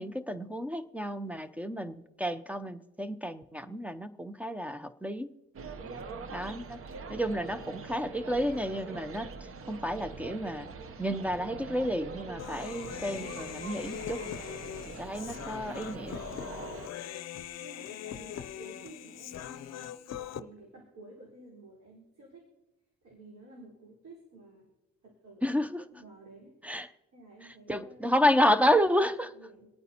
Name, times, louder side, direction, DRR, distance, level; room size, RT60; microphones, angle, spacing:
voice 1, 0.0-5.3 6.3-6.8 7.1-9.3 9.7-10.7 11.0-14.2 14.9-16.2 25.4-25.8 26.6-26.9 27.7-29.3, equal, 5° right, 11 dB, 0.5 m, -30 dB
sound 1, 5.5-16.9, right 4 dB, 45° right, 0.8 m, -43 dB
Human voice, 12.4-20.4, left 11 dB, 60° left, 0.6 m, -41 dB
voice 2, 17.6-22.5 23.0-24.7 25.0-25.6 25.9-26.6 27.1-28.3 29.3-29.7, right 2 dB, 65° right, -4 dB, 4.3 m, -52 dB
27.0 x 9.1 x 2.9 m, 1.0 s
cardioid pair, 90°, 30 cm